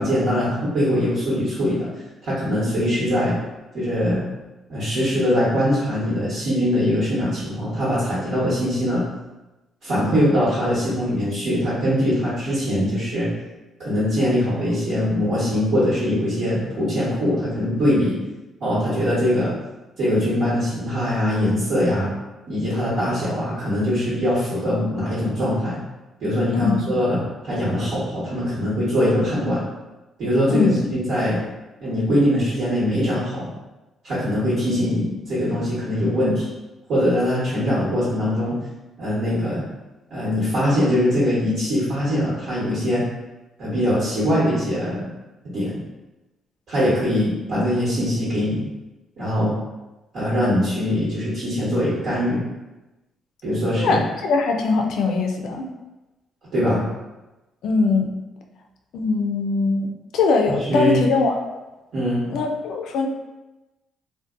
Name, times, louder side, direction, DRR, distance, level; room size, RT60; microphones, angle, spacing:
voice 1, 0.0-1.9 2.2-3.4 3.7-4.2 4.7-9.0 9.8-13.3 13.8-18.2 18.6-19.5 20.0-22.1 22.5-25.8 26.2-29.6 30.2-31.4 31.8-33.5 34.0-36.5 36.9-38.6 39.0-39.6 40.1-43.0 43.6-45.0 45.4-45.8 46.7-48.6 49.2-49.6 50.1-52.4 53.4-54.0 56.5-56.8 60.5-61.0 61.9-62.3, equal, 70° right, -9 dB, 1.1 m, -22 dB
voice 2, 26.5-26.9 30.5-30.8 53.8-55.7 57.6-58.1 58.9-59.9 60.1-61.4 62.3-63.1, left 4 dB, 80° left, 2 dB, 0.3 m, -21 dB
2.5 x 2.1 x 2.4 m, 1.1 s
cardioid pair, 90°, 0 cm